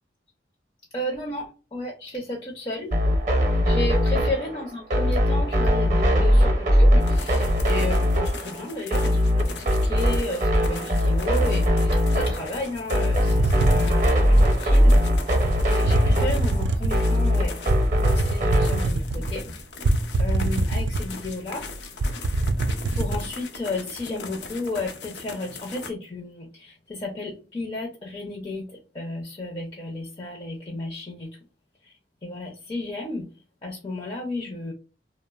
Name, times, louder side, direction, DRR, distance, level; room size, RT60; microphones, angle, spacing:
voice 1, 0.9-3.0 3.6-15.0 15.3-19.5 20.2-21.7 22.5-22.6 22.9-31.4 31.8-33.3 33.6-34.7, left 1 dB, 30° left, -1 dB, 0.4 m, -33 dB
sound 1, 2.9-18.9, equal, 45° right, 0.6 m, -21 dB
sound 2, 7.0-25.9, left 4 dB, 85° left, 0.5 m, -40 dB
sound 3, 13.1-14.6 15.4-15.5 15.9-17.0 17.7-19.4 19.8-21.3 21.6-21.7 22.0-23.2, right 2 dB, 85° right, 0.4 m, -24 dB
2.9 x 2.0 x 2.2 m, 0.34 s
head